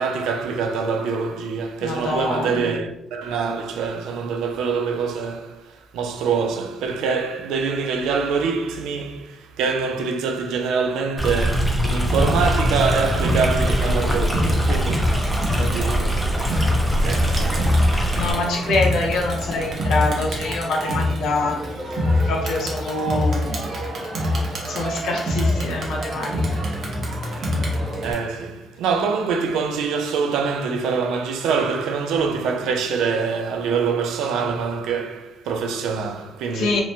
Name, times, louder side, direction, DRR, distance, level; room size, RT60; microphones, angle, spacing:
voice 1, 0.0-15.2 15.5-16.3 17.0-17.9 28.0-36.8, right 5 dB, 90° right, 0.3 m, -25 dB
voice 2, 1.8-2.7 18.1-21.6 22.3-23.6 24.7-26.4 36.5-36.8, left 2 dB, 80° left, 0.6 m, -25 dB
Stream, 11.2-18.3, equal, ahead, 0.5 m, -23 dB
Crowd, 12.1-28.1, left 1 dB, 60° right, 0.7 m, -25 dB
2.8 x 2.1 x 2.6 m
cardioid pair, 90°, 0 cm